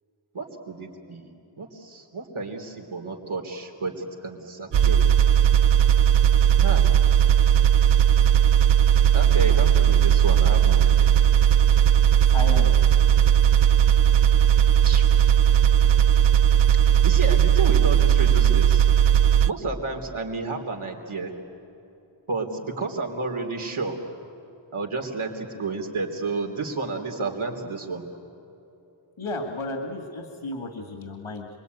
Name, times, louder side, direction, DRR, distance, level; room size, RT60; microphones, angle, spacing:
voice 1, 0.3-1.3 1.6-5.0 6.6-6.9 9.1-11.1 14.9-15.0 16.8-18.9 19.5-21.3 22.3-24.0 24.7-28.0, right 3 dB, 85° right, 2 dB, 3.4 m, -31 dB
sound 1, 4.7-19.5, right 9 dB, 60° right, 0.5 m, -17 dB
voice 2, 12.3-12.8 29.2-31.5, left 2 dB, 85° left, 4 dB, 2.4 m, -33 dB
28.5 x 22.0 x 9.4 m, 2.9 s
wide cardioid pair, 105°, 48 cm